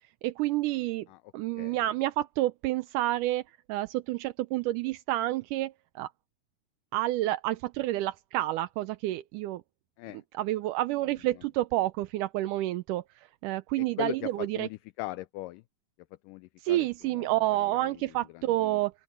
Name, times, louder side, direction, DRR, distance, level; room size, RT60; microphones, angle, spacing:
voice 1, 0.2-1.0 1.3-3.4 3.7-5.7 6.0-6.1 6.9-9.6 10.4-13.0 13.4-14.7 16.7-18.9, right 16 dB, 80° right, 1.9 m, -29 dB
voice 2, 13.8-15.6 16.2-18.8, left 19 dB, 85° left, 1.9 m, -40 dB
open air
omnidirectional pair, 4.3 m